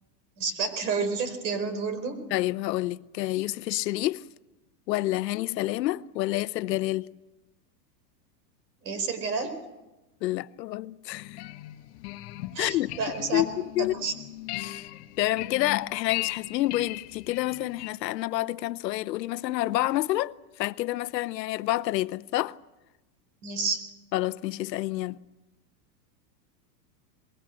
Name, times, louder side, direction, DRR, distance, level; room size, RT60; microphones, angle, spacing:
voice 1, 0.4-2.2 8.8-9.6 12.5-13.4 13.9-14.1 23.4-23.8, right 4 dB, 90° right, 4.7 m, -30 dB
voice 2, 2.3-4.2 4.9-7.1 10.2-11.4 12.6-12.9 13.2-13.9 14.6-14.9 15.2-22.6 24.1-25.2, left 16 dB, 80° left, 0.8 m, -28 dB
sound 1, 11.1-17.9, left 17 dB, 40° left, 1.1 m, -38 dB
24.0 x 21.0 x 7.8 m
supercardioid pair, 160°, 50 cm